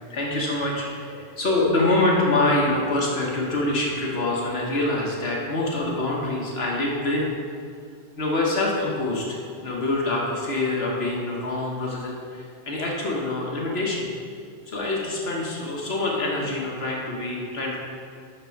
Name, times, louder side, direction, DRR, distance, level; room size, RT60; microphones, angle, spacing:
voice 1, 0.1-7.3 8.2-14.1 14.7-17.8, left 2 dB, 75° left, -3 dB, 1.4 m, -25 dB
6.6 x 6.1 x 5.8 m, 2.4 s
omnidirectional pair, 1.1 m